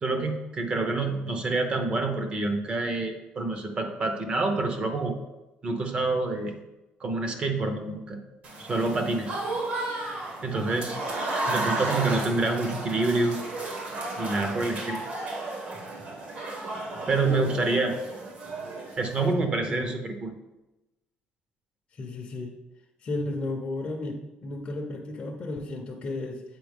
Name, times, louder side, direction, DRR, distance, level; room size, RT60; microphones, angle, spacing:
voice 1, 0.0-5.2 5.6-6.5 7.0-8.2 8.6-9.3 10.4-11.0 11.5-13.4 14.2-15.0 17.1-17.9 19.0-20.3, right 3 dB, 30° right, 5 dB, 0.8 m, -27 dB
Applause / Crowd, 8.4-19.3, right 2 dB, 45° right, 1.2 m, -33 dB
voice 2, 17.2-17.7 19.2-20.0 21.9-22.5 23.0-26.4, left 2 dB, 35° left, 0 dB, 0.6 m, -34 dB
7.7 x 4.3 x 3.4 m, 1.0 s
cardioid pair, 140°, 3 cm